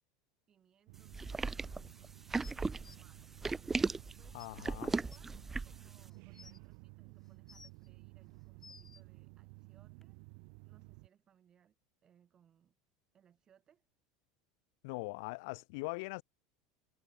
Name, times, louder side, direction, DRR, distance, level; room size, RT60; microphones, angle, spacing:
voice 1, 0.5-1.7 2.3-3.4 4.0-5.4 5.6-10.2 10.6-11.8 12.0-12.7 13.1-13.8, right 9 dB, 35° right, 5.6 m, -69 dB
sound 1, 0.9-11.1, right 40 dB or more, 65° right, 1.2 m, -55 dB
sound 2, 1.1-5.9, right 3 dB, 15° right, 0.4 m, -36 dB
sound 3, 2.4-3.0 4.0-4.1 4.4-4.5 5.1-5.2 6.0-6.6 7.2-7.9 8.4-9.0 10.0-10.1, left 4 dB, 20° left, 3.7 m, -57 dB
voice 2, 4.3-4.9 14.8-16.2, left 27 dB, 70° left, 1.7 m, -41 dB
supercardioid pair, 105°, 2 cm